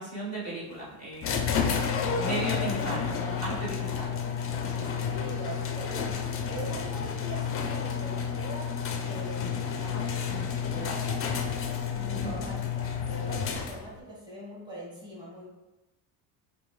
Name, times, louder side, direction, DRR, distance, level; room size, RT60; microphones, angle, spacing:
voice 1, 0.0-4.2 4.6-5.0 12.1-12.4, right 2 dB, 35° right, -6 dB, 1.3 m, -37 dB
sound 1, 1.2-14.0, left 6 dB, 30° left, 0.4 m, -30 dB
voice 2, 5.0-6.1 6.5-8.7 9.0-11.3 11.9-15.5, right 1 dB, 10° right, -6 dB, 1.3 m, -42 dB
4.7 x 2.1 x 3.1 m, 1.0 s
supercardioid pair, 85°, 45 cm